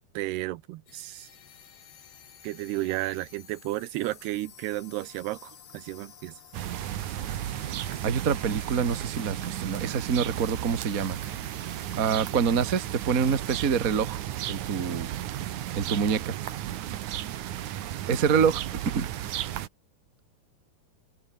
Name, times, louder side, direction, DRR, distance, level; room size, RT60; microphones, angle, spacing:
voice 1, 0.1-1.3 2.4-6.4, right 17 dB, 85° right, 2.9 m, -33 dB
sound 1, 0.9-13.7, left 8 dB, 90° left, 6.0 m, -52 dB
sound 2, 6.5-19.7, right 12 dB, 65° right, 2.3 m, -34 dB
voice 2, 8.0-11.2 12.0-14.2 14.5-15.1 15.7-16.3 17.6-18.6 18.9-19.1, right 6 dB, 30° right, 1.6 m, -26 dB
open air
omnidirectional pair, 4.6 m